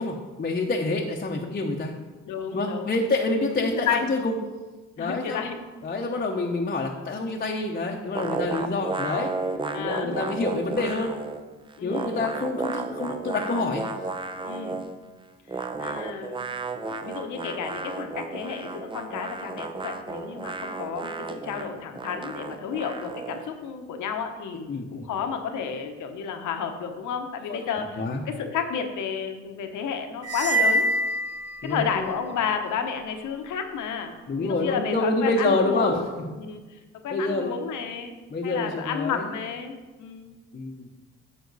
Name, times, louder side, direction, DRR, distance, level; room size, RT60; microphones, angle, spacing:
voice 1, 0.0-1.9 2.5-4.4 5.0-5.4 5.8-9.3 9.8-11.2 11.8-13.8 24.7-25.1 27.5-27.6 28.0-28.2 31.6-32.1 34.3-36.0 37.1-37.6 38.3-39.3 40.5-40.9, left 2 dB, 30° left, 0 dB, 0.8 m, -27 dB
voice 2, 2.2-2.9 3.6-4.0 5.0-5.6 8.4-8.6 9.7-10.2 11.8-12.3 14.4-14.8 15.5-16.5 16.9-30.9 31.6-34.1 34.4-36.1 36.4-36.8 37.0-38.1 38.4-40.3, left 7 dB, 80° left, 6 dB, 1.0 m, -31 dB
sound 1, 8.2-11.4 11.7-15.0 15.5-23.5, right 3 dB, 15° right, 0.5 m, -33 dB
sound 2, 30.2-32.1, right 1 dB, 55° right, 1.1 m, -25 dB
9.4 x 5.7 x 4.0 m, 1.3 s
cardioid pair, 90°, 30 cm